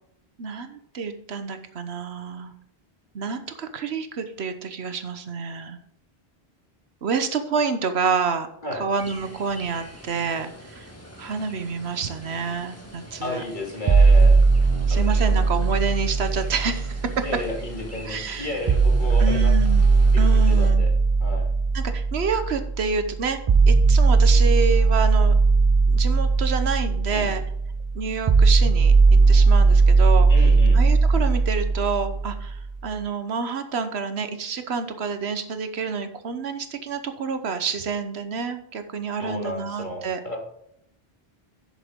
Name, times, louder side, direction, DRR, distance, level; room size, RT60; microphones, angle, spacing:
voice 1, 0.4-2.5 3.1-5.8 7.0-10.9 11.2-13.4 14.9-17.1 18.1-18.6 19.2-19.9 20.2-20.9 21.7-23.4 23.7-25.3 25.9-27.4 27.9-28.9 29.3-30.3 30.7-40.2, right 5 dB, 80° right, 8 dB, 1.2 m, -28 dB
sound 1, 9.0-20.7, equal, 15° left, 1.9 m, -45 dB
voice 2, 13.2-14.4 14.9-15.4 17.2-19.8 20.1-20.9 21.2-21.5 27.1-27.3 30.3-30.8 39.2-40.4, left 1 dB, 50° left, -1 dB, 2.9 m, -33 dB
sound 2, 13.9-17.9 18.7-32.7, right 4 dB, 45° right, 0.4 m, -18 dB
10.5 x 7.5 x 3.7 m, 0.71 s
omnidirectional pair, 1.1 m